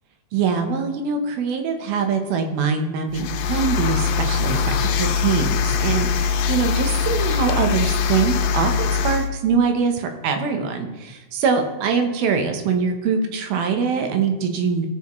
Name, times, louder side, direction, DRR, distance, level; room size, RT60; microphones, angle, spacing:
voice 1, 0.3-5.5 5.8-14.9, right 5 dB, 85° right, 5 dB, 2.8 m, -23 dB
sound 1, 3.1-9.3, left 6 dB, 85° left, 2.5 m, -22 dB
15.0 x 5.8 x 3.1 m, 1.1 s
omnidirectional pair, 4.2 m